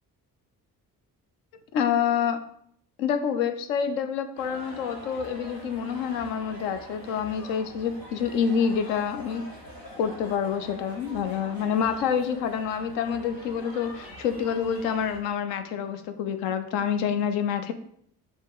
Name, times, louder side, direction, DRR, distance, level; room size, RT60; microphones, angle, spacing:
voice 1, 1.7-2.4 3.0-9.4 10.0-17.7, left 7 dB, 70° left, 9 dB, 0.7 m, -27 dB
sound 1, 4.4-15.2, equal, 90° left, 1.1 m, -45 dB
5.3 x 3.5 x 5.3 m, 0.68 s
figure-of-eight pair, 45°, 48 cm